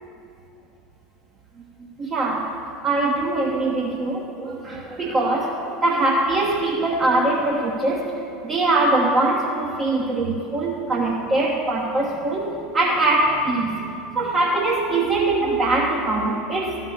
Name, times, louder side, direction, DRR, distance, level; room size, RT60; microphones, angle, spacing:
voice 1, 2.0-2.5 2.8-16.8, right 2 dB, 30° right, -3 dB, 1.1 m, -22 dB
13.0 x 5.7 x 6.6 m, 2.6 s
figure-of-eight pair, 75°, 0 cm